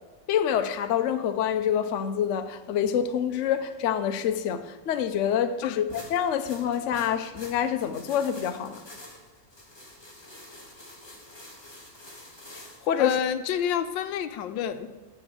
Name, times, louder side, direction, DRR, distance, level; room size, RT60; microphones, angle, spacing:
voice 1, 0.3-8.8 12.5-13.2, left 9 dB, 60° left, 0.8 m, -27 dB
sound 1, 5.9-13.2, left 1 dB, 15° left, 1.5 m, -47 dB
voice 2, 13.0-14.9, left 9 dB, 85° left, 1.4 m, -29 dB
9.8 x 5.0 x 7.8 m
omnidirectional pair, 2.0 m